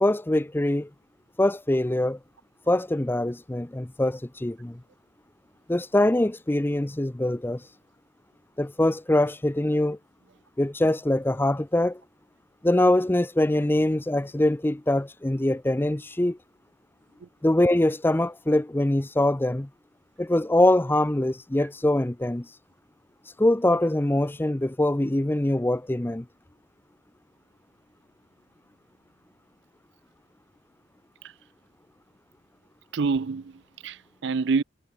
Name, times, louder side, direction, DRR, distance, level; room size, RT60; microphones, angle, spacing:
voice 1, 0.0-0.9 1.4-2.2 2.7-4.8 5.7-7.6 8.6-10.0 10.6-12.0 12.6-16.4 17.4-19.7 20.2-22.5 23.4-26.3, left 1 dB, 10° left, 0.5 m, -23 dB
voice 2, 32.9-34.6, right 4 dB, 65° right, 0.5 m, -27 dB
head